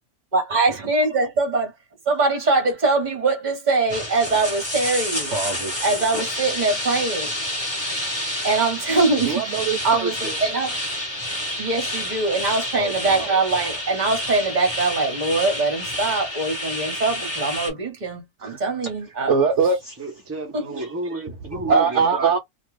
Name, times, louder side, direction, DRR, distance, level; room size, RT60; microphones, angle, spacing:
voice 1, 0.3-1.7 2.1-5.3 5.8-7.4 8.4-9.4 9.8-10.8 11.6-19.3 20.5-20.6 21.7-21.8, right 3 dB, 35° right, 1.0 m, -22 dB
sound 1, 3.9-17.7, left 1 dB, 20° left, 1.0 m, -29 dB
voice 2, 5.3-6.0 9.2-10.4 12.7-13.3 18.4-18.9 19.3-20.0 20.8-20.9 21.7-22.4, right 5 dB, 65° right, 0.7 m, -24 dB
voice 3, 20.0-22.4, right 2 dB, 20° right, 0.4 m, -31 dB
2.6 x 2.3 x 3.1 m
omnidirectional pair, 1.7 m